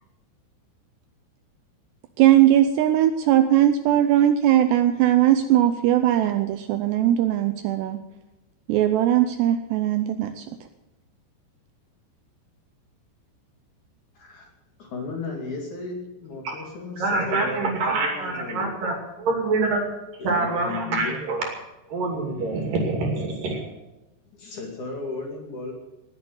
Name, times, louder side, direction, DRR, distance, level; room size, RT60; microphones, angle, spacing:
voice 1, 2.2-8.0 8.7-10.5, right 12 dB, 80° right, 9 dB, 2.6 m, -19 dB
voice 2, 14.1-14.5 14.8-18.7 20.2-21.2 24.3-25.7, left 3 dB, 50° left, 1 dB, 3.3 m, -34 dB
voice 3, 17.0-19.8 20.2-21.5 21.9-23.6, right 3 dB, 50° right, 3 dB, 3.8 m, -25 dB
19.0 x 8.3 x 7.9 m, 1.0 s
omnidirectional pair, 5.3 m